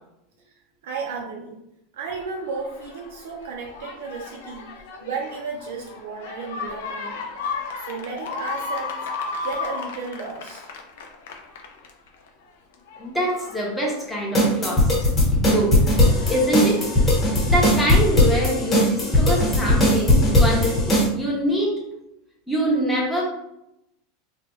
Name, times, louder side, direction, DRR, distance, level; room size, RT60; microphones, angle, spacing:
voice 1, 0.8-1.6 1.9-7.2 7.8-8.9 9.4-10.7, right 4 dB, 85° right, -1 dB, 0.5 m, -33 dB
sound 1, 2.1-12.3 12.7-15.2 15.8-18.6 19.4-19.5, left 4 dB, 80° left, 0.5 m, -35 dB
voice 2, 13.0-14.9 15.3-15.8 16.3-16.9 17.4-21.7 22.5-23.2, equal, ahead, -5 dB, 0.6 m, -24 dB
sound 2, 14.3-21.1, left 1 dB, 15° left, 1.0 m, -18 dB
3.2 x 2.2 x 3.0 m, 0.84 s
supercardioid pair, 165°, 0 cm